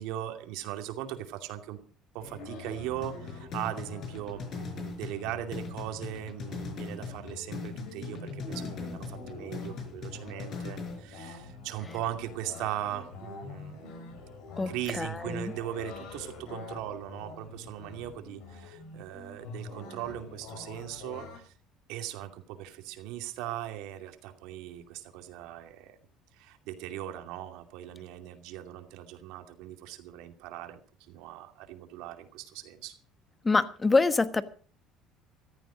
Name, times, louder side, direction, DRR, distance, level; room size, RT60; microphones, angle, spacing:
voice 1, 0.0-1.8 2.1-14.2 14.7-21.5 21.9-26.0 26.3-30.8 31.1-32.9, right 12 dB, 80° right, 6 dB, 2.5 m, -39 dB
sound 1, 2.2-21.4, left 3 dB, 75° left, 6.8 m, -46 dB
sound 2, 3.0-11.0, left 4 dB, 50° left, 5.8 m, -40 dB
voice 2, 15.0-15.5 33.4-34.4, left 3 dB, 20° left, 12 dB, 1.3 m, -25 dB
14.5 x 14.5 x 5.0 m, 0.40 s
supercardioid pair, 105°, 0 cm